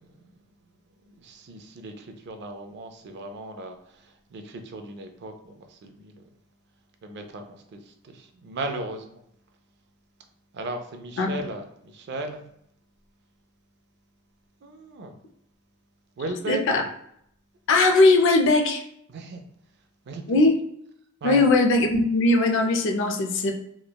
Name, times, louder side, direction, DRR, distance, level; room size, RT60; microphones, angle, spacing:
voice 1, 1.2-6.2 7.0-9.2 10.5-12.4 14.6-15.1 16.2-16.9 19.1-19.4 20.1-20.4 21.2-21.4, right 2 dB, 55° right, 5 dB, 0.4 m, -36 dB
voice 2, 16.5-16.8 17.7-18.8 20.3-20.5 21.2-23.5, left 2 dB, 65° left, 4 dB, 0.4 m, -19 dB
3.1 x 2.1 x 2.2 m, 0.73 s
head